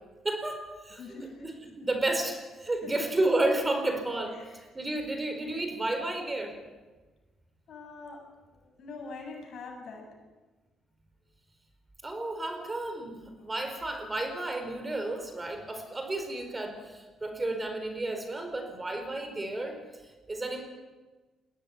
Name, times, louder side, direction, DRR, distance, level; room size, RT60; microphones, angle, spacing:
voice 1, 0.2-6.6 12.0-20.6, right 2 dB, 20° right, 6 dB, 4.5 m, -32 dB
voice 2, 1.0-1.5 2.8-2.9 4.3-4.6 7.7-8.2 8.5-10.1, left 3 dB, 65° left, 2 dB, 7.4 m, -43 dB
21.5 x 17.0 x 9.5 m, 1.2 s
cardioid pair, 90°, 0 cm